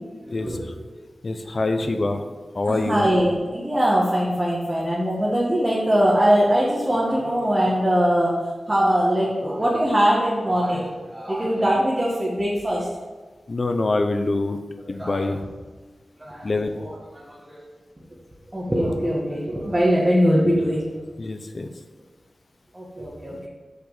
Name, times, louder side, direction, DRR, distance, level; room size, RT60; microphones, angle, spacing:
voice 1, 0.2-1.0 1.5-2.3 2.7-8.4 8.7-12.9 14.8-15.4 16.2-17.7 18.5-20.9 22.7-23.4, equal, 25° right, -6 dB, 1.8 m, -22 dB
voice 2, 1.2-2.2 2.5-3.0 13.5-14.6 14.9-15.4 16.4-16.8 21.2-21.7, left 2 dB, 55° left, 7 dB, 0.7 m, -25 dB
6.5 x 5.0 x 5.0 m, 1.3 s
wide cardioid pair, 65°, 0 cm